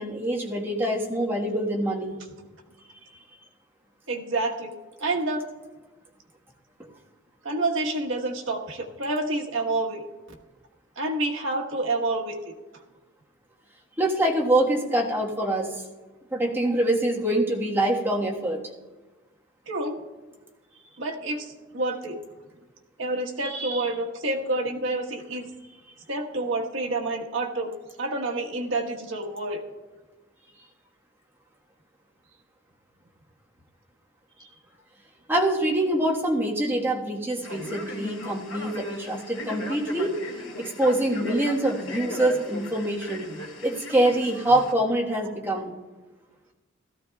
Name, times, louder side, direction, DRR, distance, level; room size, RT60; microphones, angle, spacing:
voice 1, 0.0-2.2 14.0-15.7 16.3-18.6 35.3-40.2 40.6-43.2 43.6-45.7, right 1 dB, 10° right, -3 dB, 1.4 m, -25 dB
voice 2, 4.1-4.7 5.0-5.4 7.4-10.0 11.0-12.4 19.7-20.0 21.0-22.2 23.0-25.5 26.1-27.7 28.0-29.6 34.4-34.5, right 2 dB, 75° right, 0 dB, 1.3 m, -28 dB
Male speech man speaking, 37.4-44.7, left 1 dB, 80° left, 2.2 m, -38 dB
16.5 x 13.5 x 2.3 m, 1.2 s
head